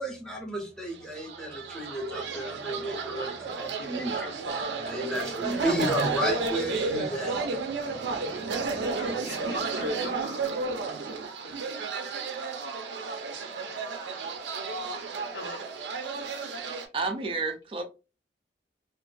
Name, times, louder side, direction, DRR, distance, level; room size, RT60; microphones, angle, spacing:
voice 1, 0.0-8.8, equal, 5° left, 0.7 m, -33 dB
sound 1, 1.0-16.9, right 4 dB, 85° right, 0.5 m, -32 dB
voice 2, 9.0-10.6 11.4-11.5 15.3-15.6, left 2 dB, 75° left, 1.0 m, -41 dB
voice 3, 16.9-17.8, right 3 dB, 30° right, 0.3 m, -30 dB
2.5 x 2.4 x 2.2 m
head